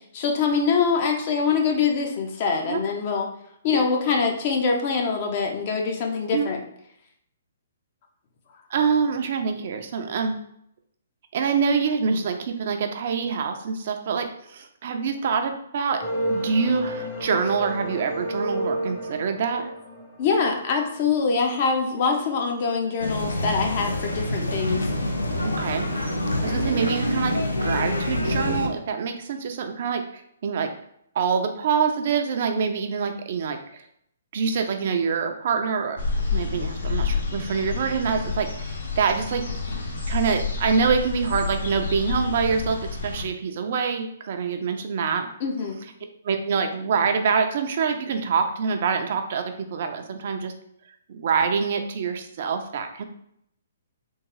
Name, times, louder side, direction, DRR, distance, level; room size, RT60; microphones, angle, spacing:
voice 1, 0.1-3.3 3.6-6.6 20.2-24.9 45.4-45.8, left 5 dB, 45° left, 3 dB, 0.7 m, -24 dB
voice 2, 8.7-10.4 11.3-16.0 16.3-19.7 25.4-25.9 26.4-30.7 31.1-33.8 34.3-36.0 36.3-39.5 40.1-45.3 46.2-50.5 51.1-53.0, right 5 dB, 55° right, 6 dB, 0.5 m, -25 dB
sound 1, 16.0-21.1, equal, 25° left, 1.0 m, -31 dB
sound 2, 23.0-28.7, left 1 dB, 85° left, 0.6 m, -26 dB
sound 3, 36.0-43.2, left 4 dB, 70° left, 1.0 m, -29 dB
3.6 x 2.5 x 3.1 m, 0.72 s
figure-of-eight pair, 130°, 0 cm